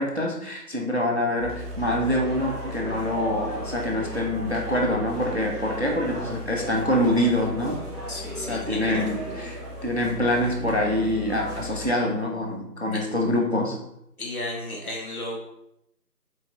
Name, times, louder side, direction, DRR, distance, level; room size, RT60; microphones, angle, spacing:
voice 1, 0.0-7.8 8.4-13.8, left 1 dB, 45° right, 0 dB, 0.5 m, -25 dB
sound 1, 1.4-11.9, equal, ahead, 0.7 m, -35 dB
voice 2, 8.1-9.0 12.9-13.0 14.2-15.4, left 1 dB, 60° left, -2 dB, 1.2 m, -33 dB
4.3 x 4.0 x 2.5 m, 0.79 s
figure-of-eight pair, 165°, 49 cm